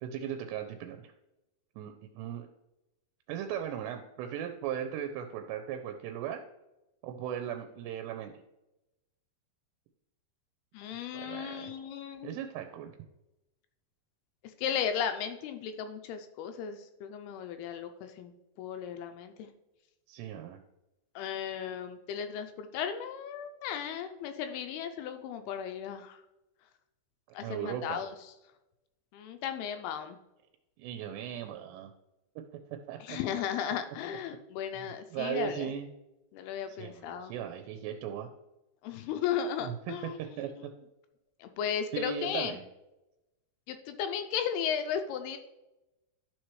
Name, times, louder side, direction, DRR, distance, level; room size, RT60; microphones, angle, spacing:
voice 1, 0.0-1.1 1.8-2.5 3.3-6.4 7.0-8.3 11.1-11.7 12.2-12.9 20.1-20.6 27.4-28.0 30.8-31.9 32.9-33.2 34.8-34.9 35.1-35.9 36.7-38.3 39.6-40.7 41.9-42.6, right 9 dB, 85° right, 5 dB, 2.7 m, -37 dB
voice 2, 10.7-12.4 14.6-18.3 18.6-19.5 21.2-26.2 27.3-28.1 29.1-30.2 33.0-35.7 36.3-37.3 38.8-40.2 40.6-40.7 41.4-42.6 43.7-45.4, left 8 dB, 80° left, 8 dB, 2.4 m, -35 dB
12.0 x 4.4 x 3.1 m, 0.97 s
omnidirectional pair, 4.9 m